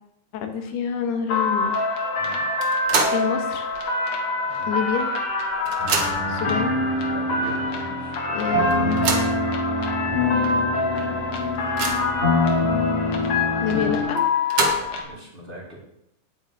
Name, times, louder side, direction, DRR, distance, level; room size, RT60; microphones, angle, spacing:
voice 1, 0.3-1.8 3.1-3.7 4.7-5.1 6.3-6.8 8.3-9.0 13.6-14.2, left 8 dB, 75° left, 5 dB, 3.3 m, -27 dB
sound 1, 1.3-15.0, left 3 dB, 50° left, 2.2 m, -26 dB
sound 2, 2.6-3.3 3.7-3.8 4.9-5.0 5.3-6.4 7.1-7.2 7.6-7.7 8.7-9.4 10.1-10.2 10.6-10.7 11.2-12.2 14.2-15.1, right 4 dB, 70° right, 1.3 m, -26 dB
voice 2, 4.4-4.8 7.1-8.2 8.5-8.7 15.0-15.8, right 1 dB, 15° right, -5 dB, 3.5 m, -40 dB
sound 3, 5.8-14.0, left 2 dB, 10° left, 4.2 m, -25 dB
18.0 x 8.5 x 3.6 m, 0.80 s
omnidirectional pair, 4.8 m